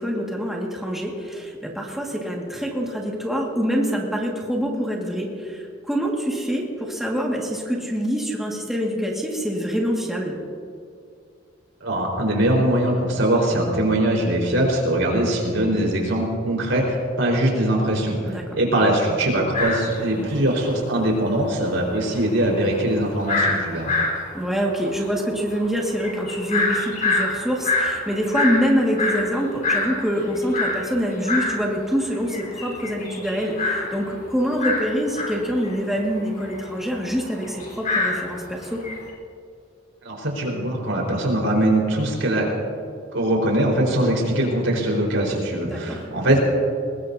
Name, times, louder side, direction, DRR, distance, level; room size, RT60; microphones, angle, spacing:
voice 1, 0.0-10.3 18.3-18.6 20.2-20.3 24.3-38.8 45.7-46.0, equal, ahead, -3 dB, 1.9 m, -25 dB
voice 2, 11.8-23.9 40.0-42.5 43.1-46.4, right 1 dB, 75° right, -2 dB, 4.6 m, -22 dB
sound 1, 19.5-20.8 21.0-21.1 21.4-31.6 32.0-39.0, left 3 dB, 40° left, 4.2 m, -26 dB
22.5 x 20.5 x 2.8 m, 2.3 s
head